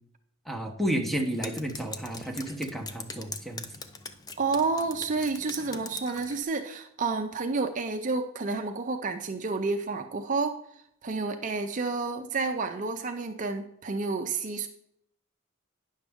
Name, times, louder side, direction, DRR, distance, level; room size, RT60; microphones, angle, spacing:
voice 1, 0.5-3.6, equal, ahead, 3 dB, 0.9 m, -31 dB
Drip, 1.2-6.4, left 3 dB, 20° left, 0.5 m, -42 dB
voice 2, 4.4-10.6 11.0-14.7, right 4 dB, 35° right, 5 dB, 0.5 m, -30 dB
9.8 x 6.4 x 3.5 m, 0.72 s
head